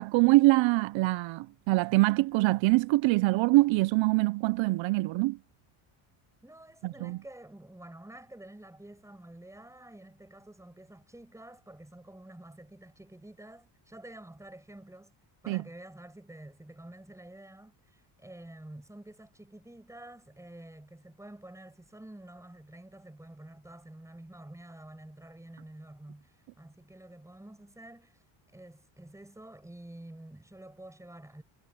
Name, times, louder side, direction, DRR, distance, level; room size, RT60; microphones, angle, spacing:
voice 1, 0.0-5.4 6.8-7.2 15.5-15.6, right 21 dB, 70° right, 0.6 m, -24 dB
voice 2, 6.4-15.1 15.4-28.2 28.5-31.4, right 1 dB, 5° right, 6.8 m, -49 dB
cardioid pair, 125°, 48 cm